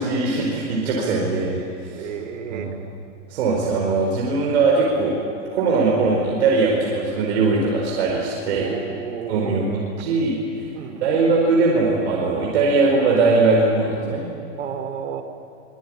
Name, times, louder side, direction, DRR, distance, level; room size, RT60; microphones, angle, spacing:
voice 1, 0.0-1.6 1.9-2.1 2.5-2.7 3.3-5.2 5.5-8.7 9.3-10.6 11.0-14.3, right 3 dB, 60° right, -2 dB, 4.9 m, -20 dB
voice 2, 1.9-2.7 5.7-5.8 8.6-9.7 10.7-11.1 12.5-12.6 14.6-15.2, right 7 dB, 80° right, 7 dB, 2.9 m, -32 dB
25.0 x 21.0 x 9.0 m, 2.6 s
supercardioid pair, 170°, 37 cm